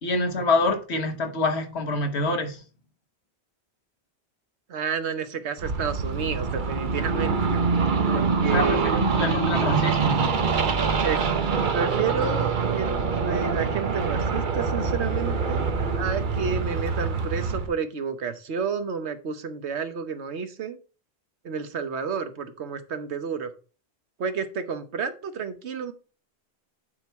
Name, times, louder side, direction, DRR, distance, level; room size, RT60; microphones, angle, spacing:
voice 1, 0.0-2.6 8.5-10.2, left 2 dB, 80° left, 1.5 m, -26 dB
voice 2, 4.7-7.7 8.1-9.0 11.0-11.2 11.7-20.8 21.4-23.5 24.2-25.9, right 6 dB, 85° right, 1.2 m, -30 dB
sound 1, 5.6-17.7, right 5 dB, 50° right, 0.9 m, -25 dB
9.8 x 3.8 x 4.6 m
omnidirectional pair, 1.1 m